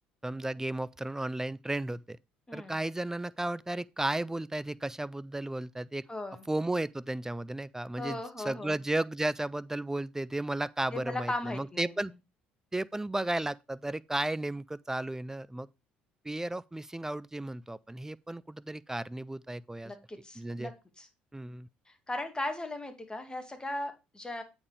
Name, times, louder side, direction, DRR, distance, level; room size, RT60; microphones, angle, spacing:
voice 1, 0.2-2.2 2.5-6.0 6.5-12.1 12.7-15.7 16.2-19.9 20.4-20.7 21.3-21.7, right 1 dB, 10° right, 0.4 m, -34 dB
voice 2, 2.5-2.8 6.1-6.4 8.0-8.7 10.9-11.9 19.8-20.7 21.0-21.1 21.9-24.4, left 1 dB, 15° left, 2.2 m, -37 dB
8.6 x 4.5 x 4.8 m
hypercardioid pair, 60°, 5 cm